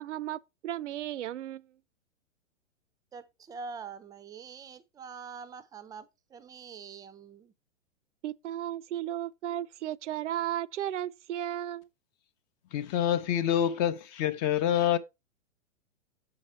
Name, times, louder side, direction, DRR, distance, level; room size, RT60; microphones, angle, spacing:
voice 1, 0.0-1.7 8.2-11.9, right 12 dB, 65° right, 0.6 m, -34 dB
voice 2, 3.1-7.5, right 5 dB, 10° right, 0.6 m, -45 dB
voice 3, 12.7-15.0, left 10 dB, 30° left, 0.7 m, -27 dB
7.6 x 5.9 x 4.4 m
hypercardioid pair, 125°, 38 cm